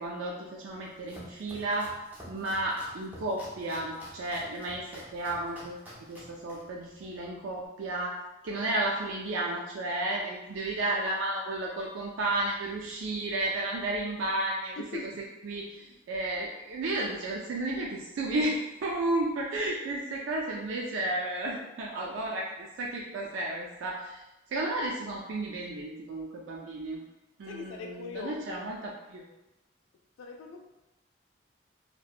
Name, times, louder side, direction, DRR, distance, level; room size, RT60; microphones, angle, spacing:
voice 1, 0.0-1.9 2.3-8.2 8.4-14.9 15.2-24.2 24.5-27.0 27.4-29.3, right 2 dB, 80° right, -2 dB, 0.3 m, -33 dB
Domestic sounds home sounds, 0.7-7.7, equal, 10° right, 0.5 m, -50 dB
voice 2, 14.8-15.1 27.5-28.7 30.2-30.6, left 4 dB, 90° left, 4 dB, 0.3 m, -40 dB
2.7 x 2.1 x 2.3 m, 0.99 s
head